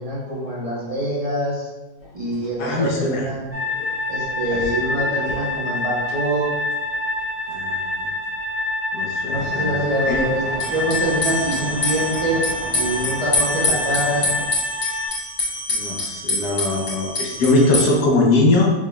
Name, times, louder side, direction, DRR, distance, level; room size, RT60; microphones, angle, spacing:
voice 1, 0.0-1.7 2.1-3.4 4.1-6.5 9.2-12.4 12.7-14.3, right 1 dB, 50° right, -6 dB, 0.4 m, -25 dB
sound 1, 2.0-2.1 2.4-2.5 2.8-2.9 3.5-3.9 4.2-6.2 6.4-6.5 10.6-17.9, left 2 dB, 35° left, 0.9 m, -27 dB
voice 2, 2.6-3.3 4.5-4.6 7.5-8.1 8.9-9.8 10.1-10.2 15.7-18.7, left 2 dB, 75° left, -2 dB, 1.3 m, -21 dB
sound 2, 3.5-15.1, left 2 dB, 10° right, 0.9 m, -26 dB
sound 3, 9.3-14.5, right 3 dB, 85° right, 1.3 m, -35 dB
4.7 x 3.4 x 2.2 m, 1.1 s
omnidirectional pair, 1.8 m